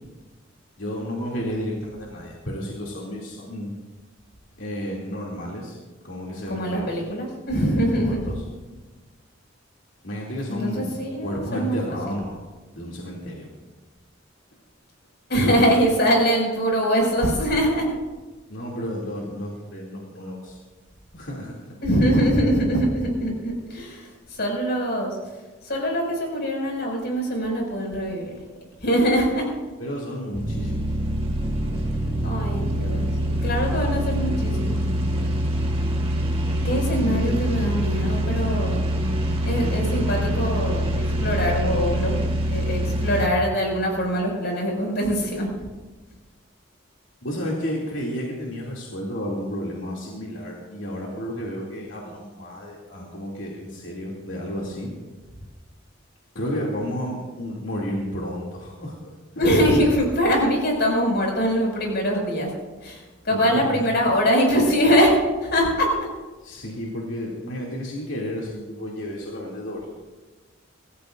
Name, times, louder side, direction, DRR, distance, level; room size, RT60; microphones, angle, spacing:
voice 1, 0.8-3.7 4.6-5.8 6.0-6.9 7.7-8.4 10.0-10.9 11.2-12.4 12.7-13.5 15.4-15.6 18.5-20.6 21.2-21.7 29.8-30.9 47.2-54.9 56.3-59.0 59.3-59.4 63.3-63.8 66.4-69.9, equal, 75° left, -4 dB, 2.7 m, -32 dB
voice 2, 6.5-8.4 10.5-12.0 15.3-17.9 21.8-25.2 25.6-28.4 28.8-29.5 32.2-33.1 33.4-34.8 36.6-38.9 39.4-42.1 42.5-45.7 59.4-62.5 62.8-65.1 65.4-65.9, equal, 60° left, 0 dB, 5.9 m, -23 dB
sound 1, 30.3-43.3, equal, 30° right, 1.8 m, -24 dB
26.5 x 14.5 x 2.6 m, 1.2 s
head